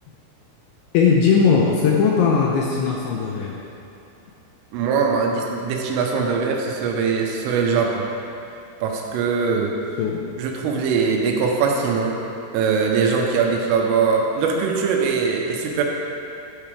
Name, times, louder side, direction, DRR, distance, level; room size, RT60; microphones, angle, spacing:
voice 1, 0.9-3.6 10.0-10.3, left 5 dB, 80° left, -2 dB, 2.7 m, -18 dB
voice 2, 4.7-8.1 8.8-9.8 10.4-12.2 12.5-15.8, right 5 dB, 80° right, 0 dB, 3.4 m, -21 dB
12.5 x 8.6 x 3.4 m, 2.8 s
omnidirectional pair, 5.9 m